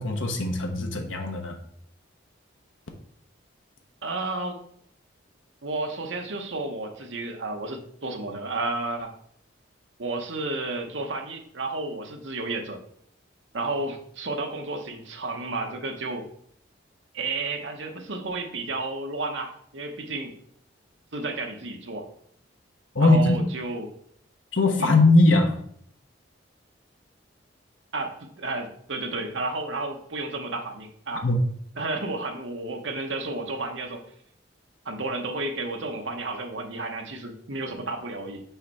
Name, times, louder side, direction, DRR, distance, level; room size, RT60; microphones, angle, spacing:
voice 1, 0.0-1.6 22.9-23.4 24.5-25.6 31.2-31.4, left 2 dB, 80° left, 3 dB, 1.0 m, -20 dB
voice 2, 4.0-4.6 5.6-9.1 10.0-12.8 13.5-16.3 17.1-20.4 21.1-22.1 23.0-23.9 24.8-24.9 27.9-31.3 31.8-34.0 34.8-38.4, right 2 dB, 75° right, 4 dB, 1.0 m, -32 dB
5.6 x 4.6 x 4.2 m, 0.65 s
head